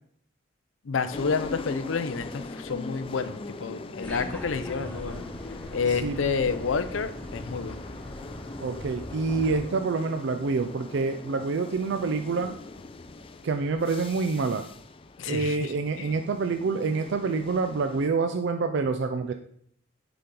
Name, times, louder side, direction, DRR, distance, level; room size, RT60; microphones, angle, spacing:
voice 1, 0.8-5.2 5.7-7.8 15.2-16.1, left 5 dB, 90° left, 11 dB, 0.5 m, -29 dB
sound 1, 1.1-18.1, left 3 dB, 30° left, 0.4 m, -41 dB
sound 2, 4.0-9.6, equal, 5° left, 1.2 m, -41 dB
voice 2, 5.9-6.2 8.6-12.6 13.4-14.6 15.3-19.3, right 4 dB, 65° right, 7 dB, 0.4 m, -27 dB
6.8 x 5.2 x 3.8 m, 0.67 s
head